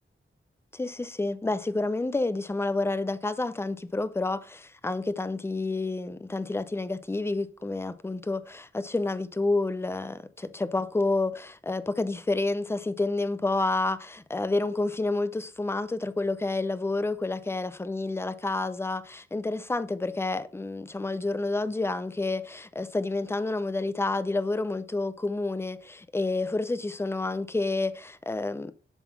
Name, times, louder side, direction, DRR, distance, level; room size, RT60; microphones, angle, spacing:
voice 1, 0.7-28.7, left 2 dB, 10° left, 0.4 m, -29 dB
11.0 x 3.9 x 5.8 m
wide cardioid pair, 175°, 21 cm